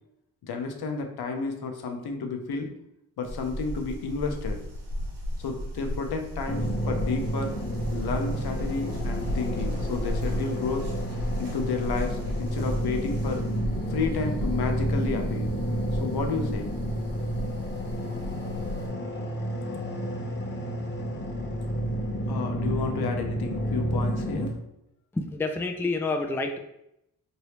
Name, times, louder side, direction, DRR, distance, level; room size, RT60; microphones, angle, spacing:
voice 1, 0.4-2.7 3.2-4.6 5.4-7.5 7.9-10.8 11.4-13.4 13.9-15.5 15.9-16.7 22.3-24.5, left 4 dB, 70° left, 4 dB, 0.6 m, -31 dB
sound 1, 3.2-18.9, equal, 85° right, 1.0 m, -34 dB
sound 2, 6.5-24.5, equal, 25° left, 0.8 m, -31 dB
voice 2, 25.1-26.6, left 3 dB, 5° left, 5 dB, 0.3 m, -28 dB
3.2 x 2.7 x 2.9 m, 0.81 s
cardioid pair, 50°, 39 cm